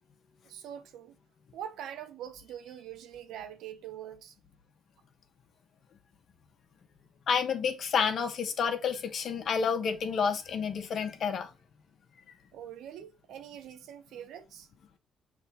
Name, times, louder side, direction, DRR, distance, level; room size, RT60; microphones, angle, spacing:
voice 1, 0.4-1.2 1.5-4.3 12.5-14.7, right 10 dB, 85° right, 0.9 m, -44 dB
voice 2, 7.3-11.5, left 6 dB, 60° left, 1.3 m, -29 dB
6.6 x 3.6 x 4.4 m
cardioid pair, 90°, 0 cm